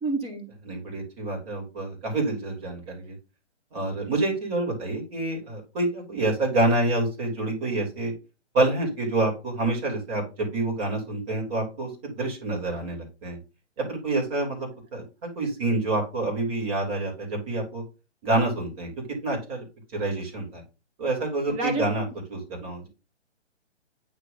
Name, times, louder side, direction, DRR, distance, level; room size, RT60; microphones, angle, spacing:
voice 1, 0.0-0.5 21.5-21.9, right 2 dB, 15° right, 6 dB, 1.3 m, -28 dB
voice 2, 0.6-3.1 3.7-8.1 8.5-13.4 13.8-17.8 18.2-19.6 19.9-20.6 21.0-22.0 22.3-22.9, right 2 dB, 30° right, 0 dB, 3.0 m, -27 dB
9.1 x 3.2 x 4.0 m, 0.30 s
figure-of-eight pair, 130°, 35 cm